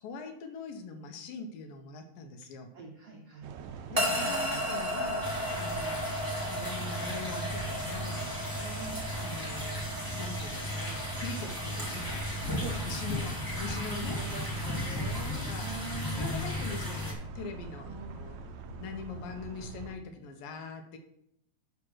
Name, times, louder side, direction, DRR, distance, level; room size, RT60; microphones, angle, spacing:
voice 1, 0.0-2.7 3.9-5.3 5.6-6.1 6.5-8.3 9.2-9.8 10.2-12.3 12.6-14.2 15.4-15.7 16.1-18.4 18.7-21.0, left 4 dB, 75° left, 5 dB, 2.7 m, -42 dB
voice 2, 2.7-5.1 8.6-9.2 12.6-12.8 13.9-16.4 17.8-18.3, right 4 dB, 65° right, -1 dB, 1.6 m, -45 dB
sound 1, 3.4-19.9, right 5 dB, 90° right, 1.5 m, -44 dB
sound 2, 4.0-14.3, equal, 15° right, 1.7 m, -36 dB
sound 3, 5.2-17.1, left 1 dB, 10° left, 1.1 m, -35 dB
8.1 x 5.8 x 6.3 m, 0.75 s
omnidirectional pair, 4.1 m